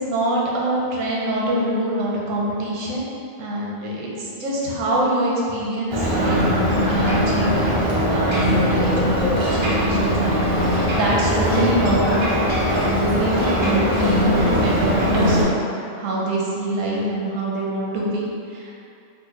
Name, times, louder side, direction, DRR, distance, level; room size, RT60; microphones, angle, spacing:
voice 1, 0.0-3.1 3.4-7.7 8.1-18.8, right 1 dB, 90° right, -4 dB, 1.1 m, -25 dB
Ocean, 5.9-15.4, equal, 50° right, 0.3 m, -20 dB
3.9 x 2.1 x 3.0 m, 2.5 s
omnidirectional pair, 1.3 m